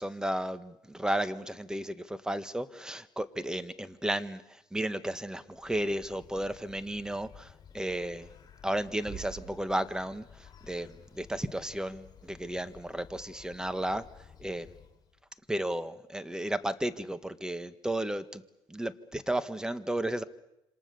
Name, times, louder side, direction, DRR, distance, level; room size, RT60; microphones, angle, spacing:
voice 1, 0.0-8.3 8.6-14.0 14.4-14.7 15.5-18.4 18.7-20.2, right 1 dB, 5° right, 12 dB, 1.7 m, -33 dB
Bird, 5.3-15.3, left 7 dB, 35° left, 4.7 m, -55 dB
sound 1, 9.1-10.5, right 9 dB, 35° right, 1.3 m, -46 dB
27.5 x 25.5 x 7.1 m, 0.89 s
supercardioid pair, 80°, 11 cm